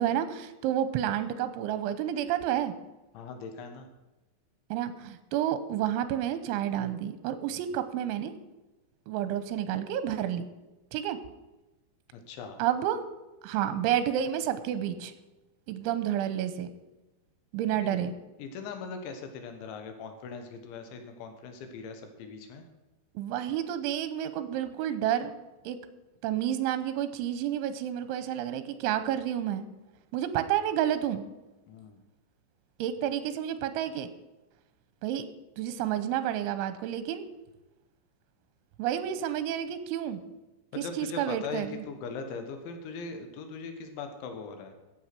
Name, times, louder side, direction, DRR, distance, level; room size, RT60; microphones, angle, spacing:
voice 1, 0.0-2.7 4.7-8.3 9.1-10.5 10.9-11.2 12.6-13.0 13.4-15.1 15.7-16.7 17.5-18.1 23.2-25.3 25.7-25.8 26.2-29.6 30.1-31.3 32.8-34.1 35.0-35.2 35.6-37.2 38.8-40.2 40.8-41.8, right 10 dB, 85° right, 11 dB, 3.2 m, -30 dB
voice 2, 3.2-3.9 12.1-12.6 17.8-18.0 18.4-22.6 31.7-32.0 40.7-44.8, left 4 dB, 75° left, 6 dB, 3.5 m, -40 dB
15.0 x 8.2 x 6.0 m, 1.1 s
omnidirectional pair, 5.5 m